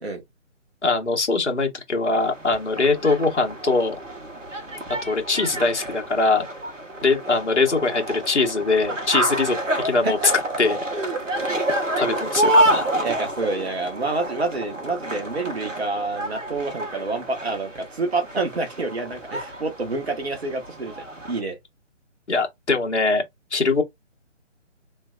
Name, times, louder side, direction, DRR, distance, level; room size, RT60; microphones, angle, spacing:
voice 1, 0.8-4.0 5.0-6.5 7.0-10.3 10.6-10.8 12.0-12.8 22.3-23.2 23.5-23.8, left 3 dB, 65° left, 1.4 m, -22 dB
sound 1, 2.2-21.4, right 1 dB, 80° right, 1.2 m, -28 dB
voice 2, 13.0-21.6, right 3 dB, 55° right, 1.5 m, -28 dB
3.2 x 3.2 x 2.4 m
figure-of-eight pair, 145°, 37 cm